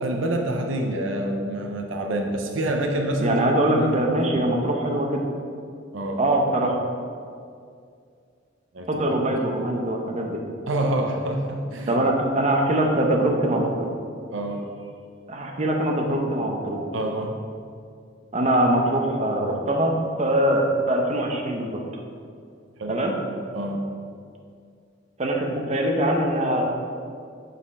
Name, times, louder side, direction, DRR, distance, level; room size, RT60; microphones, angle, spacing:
voice 1, 0.0-3.4 3.6-4.1 4.3-4.5 5.9-6.2 8.7-9.1 10.7-12.0 14.3-14.8 16.9-17.5 22.8-23.0 23.5-24.0, right 1 dB, 75° right, 3 dB, 0.6 m, -27 dB
voice 2, 3.2-5.2 6.2-6.7 8.9-10.4 11.9-13.9 15.3-16.8 18.3-19.9 20.2-21.8 22.9-23.2 25.2-26.6, right 1 dB, 35° right, 1 dB, 0.7 m, -22 dB
6.1 x 4.2 x 5.3 m, 2.3 s
head